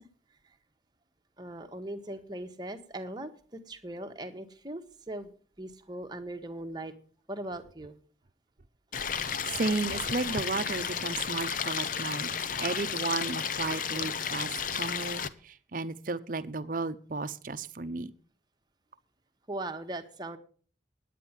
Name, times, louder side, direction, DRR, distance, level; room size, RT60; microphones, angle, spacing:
voice 1, 1.4-5.3 5.6-6.9 7.3-7.9 19.5-20.4, right 1 dB, 25° right, 6 dB, 1.2 m, -39 dB
Stream, 8.9-15.3, left 7 dB, 45° left, 0.7 m, -33 dB
voice 2, 9.5-12.3 12.6-18.1, right 3 dB, 50° right, 13 dB, 0.8 m, -33 dB
10.5 x 9.2 x 7.2 m, 0.43 s
head